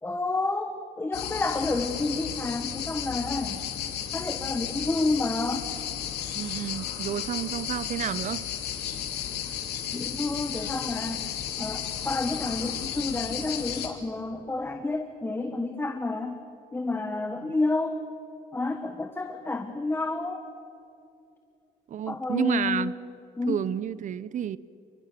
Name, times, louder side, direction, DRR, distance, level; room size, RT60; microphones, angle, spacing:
voice 1, 0.0-3.6 4.1-5.7 9.9-11.2 11.6-16.4 16.7-18.0 18.5-20.4 22.1-22.9 23.4-23.6, left 3 dB, 15° left, 6 dB, 1.4 m, -29 dB
sound 1, 1.1-13.9, left 9 dB, 75° left, 2.9 m, -33 dB
voice 2, 6.3-8.5 21.9-23.0 23.5-24.6, right 10 dB, 50° right, 18 dB, 0.8 m, -30 dB
28.0 x 21.5 x 6.8 m, 2.6 s
cardioid pair, 110°, 17 cm